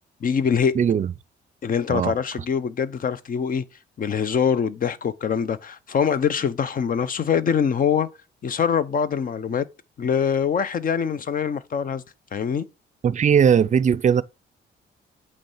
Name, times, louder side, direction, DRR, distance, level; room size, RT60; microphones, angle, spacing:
voice 1, 0.2-0.7 1.6-3.6 4.0-8.1 8.4-9.7 10.0-12.0 12.3-12.7, left 7 dB, 45° left, 0.7 m, -23 dB
voice 2, 0.7-1.1 1.9-2.1 13.0-14.2, right 7 dB, 40° right, 0.5 m, -19 dB
8.6 x 3.3 x 5.5 m
cardioid pair, 90°, 20 cm